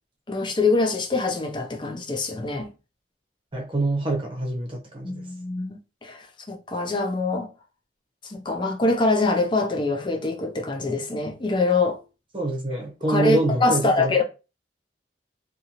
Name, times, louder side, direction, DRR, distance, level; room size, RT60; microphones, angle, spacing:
voice 1, 0.3-2.7 5.0-7.5 8.2-12.0 13.1-14.2, left 3 dB, 25° left, 0.5 m, -24 dB
voice 2, 3.5-5.3 12.3-14.2, right 2 dB, 30° right, 0.8 m, -26 dB
2.6 x 2.6 x 2.8 m
head